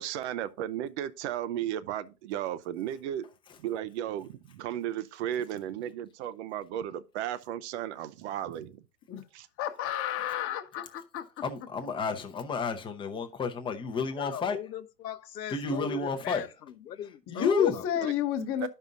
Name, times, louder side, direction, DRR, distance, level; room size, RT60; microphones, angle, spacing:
voice 1, 0.0-3.3 3.6-8.8 9.3-9.5 18.6-18.7, right 11 dB, 45° right, 0.6 m, -34 dB
voice 2, 9.6-11.2 17.3-18.7, left 10 dB, 25° left, 1.1 m, -31 dB
voice 3, 11.4-14.6 15.5-16.4 17.3-17.8, left 5 dB, 10° left, 0.7 m, -30 dB
voice 4, 14.2-18.1, left 10 dB, 85° left, 0.7 m, -40 dB
12.5 x 5.5 x 2.5 m
hypercardioid pair, 115°, 48 cm